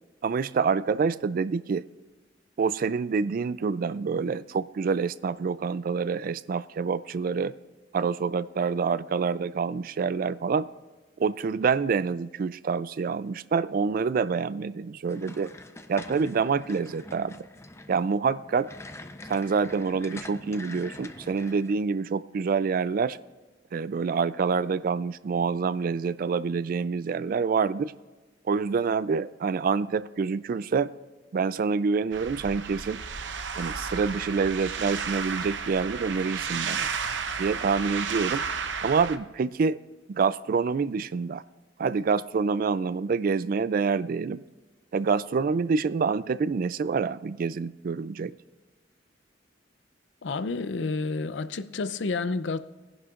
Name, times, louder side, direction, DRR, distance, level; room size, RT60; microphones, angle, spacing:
voice 1, 0.2-1.8 2.6-7.5 7.9-10.7 11.2-15.5 15.9-17.5 17.9-18.7 19.3-23.2 23.7-27.9 28.5-30.9 31.3-33.0 33.6-36.9 37.4-38.4 38.8-39.8 40.1-41.4 41.8-44.4 44.9-48.3, right 5 dB, 50° right, 0.3 m, -27 dB
sound 1, 15.1-21.7, left 2 dB, 15° left, 0.5 m, -44 dB
sound 2, 32.1-39.2, right 6 dB, 70° right, 0.7 m, -33 dB
voice 2, 50.2-52.6, left 3 dB, 70° left, 0.5 m, -30 dB
21.0 x 11.0 x 2.5 m
head